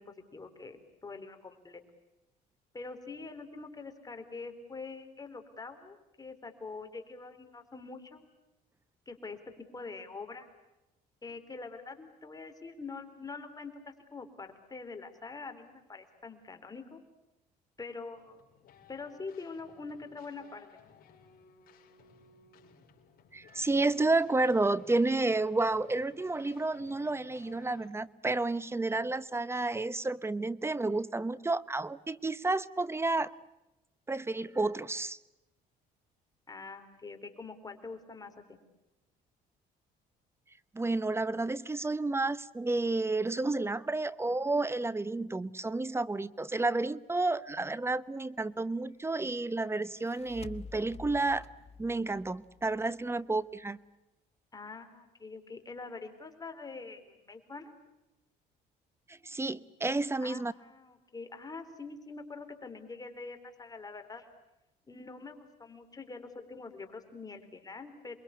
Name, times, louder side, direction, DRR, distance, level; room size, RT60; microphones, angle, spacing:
voice 1, 0.0-1.8 2.7-8.2 9.1-10.5 11.2-17.0 17.8-18.4 18.9-20.8 36.5-38.6 54.5-57.7 60.2-64.3 64.9-68.2, left 4 dB, 20° left, 7 dB, 4.1 m, -45 dB
sound 1, 18.1-27.9, left 6 dB, 60° left, 4.9 m, -59 dB
voice 2, 23.3-33.3 34.1-35.2 40.7-51.5 51.8-53.8 59.1-60.5, right 2 dB, 15° right, 18 dB, 0.9 m, -31 dB
sound 2, 49.8-53.2, left 5 dB, 35° left, 1.2 m, -49 dB
28.0 x 22.5 x 8.3 m, 0.97 s
cardioid pair, 110°, 17 cm